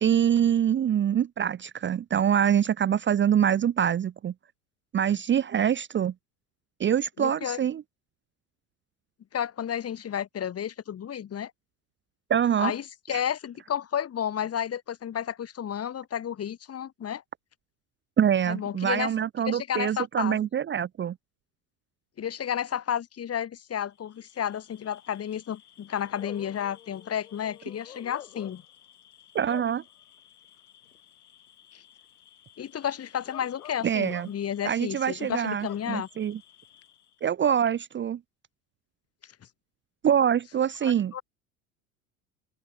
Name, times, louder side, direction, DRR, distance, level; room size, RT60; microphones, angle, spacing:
voice 1, 0.0-4.3 4.9-6.1 6.8-7.8 12.3-12.7 13.1-13.2 18.2-21.1 29.3-29.8 33.8-34.3 34.6-36.4 37.2-38.2 40.0-41.2, right 9 dB, 25° right, 0.9 m, -25 dB
voice 2, 7.2-7.6 9.3-11.5 12.6-17.2 18.5-19.1 19.4-20.4 22.2-28.6 31.7-31.8 32.6-36.1 40.8-41.2, left 9 dB, 35° left, 2.6 m, -32 dB
Bark / Cricket, 24.0-37.3, left 10 dB, 85° left, 7.7 m, -50 dB
open air
hypercardioid pair, 80°, 44 cm